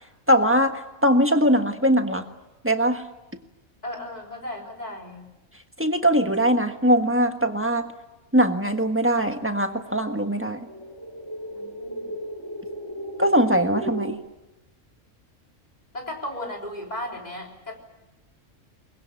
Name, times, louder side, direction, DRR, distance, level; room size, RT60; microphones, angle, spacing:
voice 1, 0.3-2.2 2.6-3.0 5.8-7.9 8.3-10.6 13.2-14.2, equal, 10° right, 6 dB, 1.4 m, -21 dB
voice 2, 3.8-5.3 11.5-12.1 15.9-17.8, left 1 dB, 30° left, 1 dB, 3.9 m, -35 dB
sound 1, 9.4-14.2, right 1 dB, 15° left, 3.2 m, -36 dB
22.5 x 21.5 x 9.8 m, 1.0 s
omnidirectional pair, 1.3 m